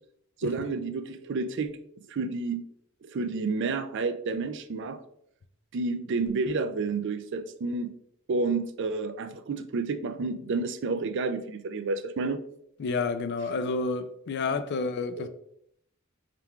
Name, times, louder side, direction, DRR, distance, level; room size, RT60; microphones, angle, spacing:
voice 1, 0.4-1.7 2.1-2.6 3.0-5.0 5.7-7.9 8.3-12.4 15.2-15.3, right 3 dB, 60° right, 0.4 m, -30 dB
voice 2, 12.8-15.3, left 4 dB, 55° left, 0.4 m, -29 dB
4.4 x 3.7 x 2.3 m
head